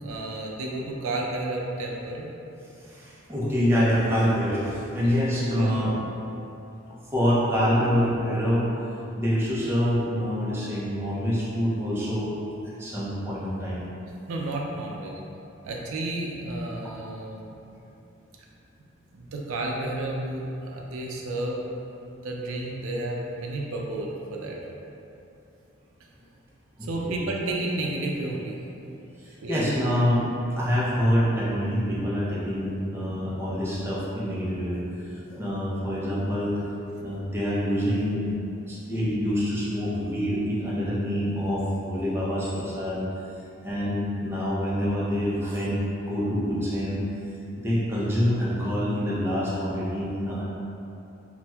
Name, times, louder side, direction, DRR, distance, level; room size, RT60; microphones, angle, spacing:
voice 1, 0.0-2.3 5.0-5.2 5.5-5.7 14.3-15.1 15.6-17.6 19.1-21.6 22.2-24.6 26.8-28.6 29.4-29.7, right 2 dB, 90° right, -1 dB, 0.4 m, -31 dB
voice 2, 2.8-5.9 7.1-8.7 9.2-12.3 12.8-13.9 16.8-16.9 27.1-27.2 29.2-30.2 30.6-34.8 35.0-36.6 37.0-38.4 38.7-43.0 43.6-45.8 46.1-47.0 47.6-50.4, equal, 10° right, -8 dB, 0.4 m, -26 dB
4.2 x 2.1 x 2.2 m, 2.8 s
head